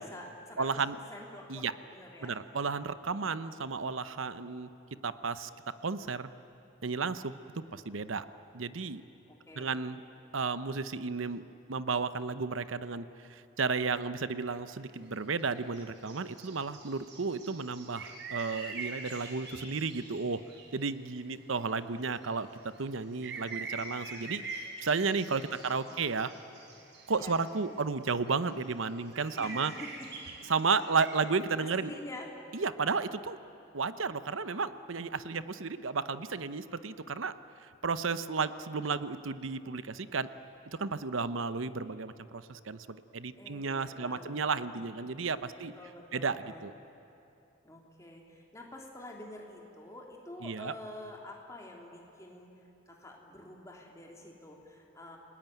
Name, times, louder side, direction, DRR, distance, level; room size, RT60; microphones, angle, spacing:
voice 1, 0.0-2.4 9.3-9.8 25.5-26.3 27.1-27.4 29.4-29.9 30.7-30.9 31.6-32.3 43.4-44.8 45.7-46.6 47.6-52.5 52.9-55.2, left 1 dB, 15° left, -1 dB, 3.1 m, -48 dB
voice 2, 0.6-1.0 1.5-1.7 2.2-4.7 5.0-5.5 5.8-6.3 6.8-7.4 7.7-8.3 8.5-9.0 9.5-10.0 10.3-11.4 11.7-20.4 20.7-22.5 22.8-24.4 24.8-26.3 27.1-29.7 30.5-31.9 32.5-33.4 33.7-37.3 37.6-40.3 40.8-45.7 46.1-46.7 50.4-50.7, right 4 dB, 75° right, 13 dB, 0.8 m, -33 dB
sound 1, 14.8-14.9 15.1-20.9 21.2-27.7 28.0-31.2, right 4 dB, 60° right, 3.9 m, -45 dB
29.5 x 20.0 x 9.2 m, 2.9 s
head